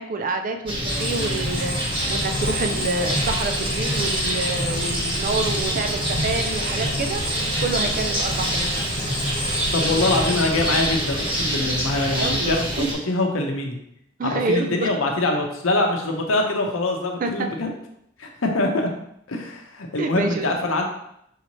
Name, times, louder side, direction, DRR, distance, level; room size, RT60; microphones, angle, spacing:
voice 1, 0.0-7.2 7.6-8.8 12.2-12.9 14.2-14.9 17.2-17.5 20.0-20.5, right 3 dB, 40° right, 6 dB, 0.4 m, -27 dB
sound 1, 0.7-12.9, equal, 25° right, 1.1 m, -26 dB
sound 2, 0.9-12.4, equal, 65° right, 1.3 m, -30 dB
voice 2, 9.7-13.8 14.2-17.7 18.2-18.9 19.3-20.8, left 2 dB, 80° left, 2 dB, 0.7 m, -24 dB
5.5 x 2.8 x 3.0 m, 0.74 s
head